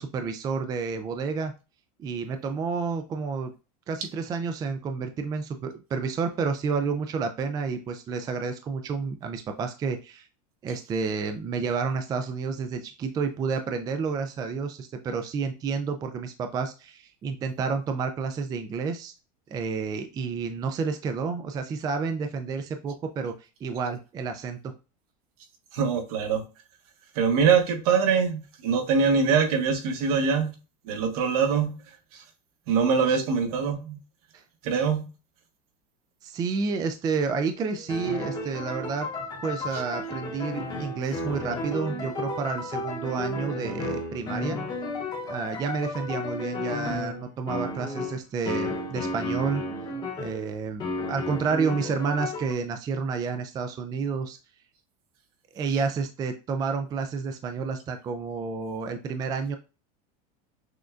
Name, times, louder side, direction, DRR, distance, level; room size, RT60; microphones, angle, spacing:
voice 1, 0.0-1.5 2.0-3.5 3.9-10.3 10.6-19.1 19.5-24.6 34.3-34.4 36.2-39.1 39.4-44.6 45.3-49.6 50.2-54.4 55.5-59.6, right 5 dB, 20° right, 0.3 m, -30 dB
voice 2, 25.7-26.4 27.1-30.5 30.9-31.8 32.7-34.0 34.6-35.1, right 6 dB, 70° right, 1.1 m, -23 dB
sound 1, 37.2-50.4 50.8-52.5, left 2 dB, 20° left, 0.9 m, -33 dB
6.2 x 2.2 x 2.4 m
supercardioid pair, 140°, 19 cm